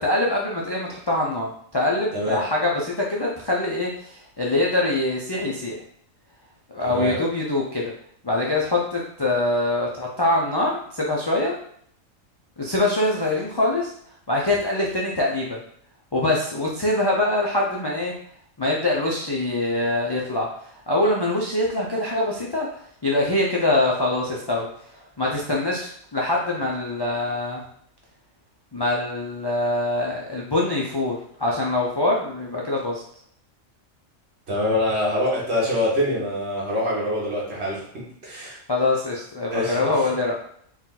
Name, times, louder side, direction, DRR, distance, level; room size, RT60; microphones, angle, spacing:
voice 1, 0.0-5.8 6.7-7.9 8.2-11.6 12.6-13.9 14.3-15.6 16.1-18.1 18.6-20.5 20.9-24.7 25.2-27.6 28.7-33.0 38.7-40.4, left 2 dB, 40° left, -4 dB, 0.3 m, -24 dB
voice 2, 2.1-2.4 6.8-7.2 34.5-38.6 39.5-40.1, left 1 dB, 55° right, -5 dB, 1.6 m, -25 dB
4.4 x 2.4 x 3.8 m, 0.64 s
omnidirectional pair, 1.3 m